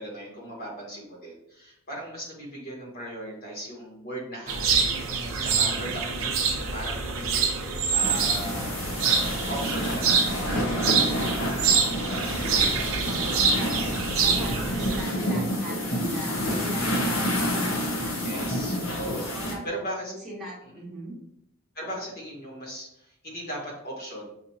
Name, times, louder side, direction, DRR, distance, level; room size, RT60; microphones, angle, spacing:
voice 1, 0.0-5.0 5.4-11.0 18.2-20.1 20.7-20.8 21.7-24.3, right 1 dB, 50° left, -3 dB, 1.4 m, -38 dB
sound 1, 4.5-15.0, right 5 dB, 80° right, 0.7 m, -26 dB
voice 2, 5.6-6.0 12.8-17.7 18.0-18.3 19.2-19.6 20.2-21.2, right 1 dB, ahead, -7 dB, 1.3 m, -40 dB
sound 2, 8.0-19.5, equal, 70° left, 0.9 m, -29 dB
6.2 x 2.7 x 2.8 m, 0.75 s
head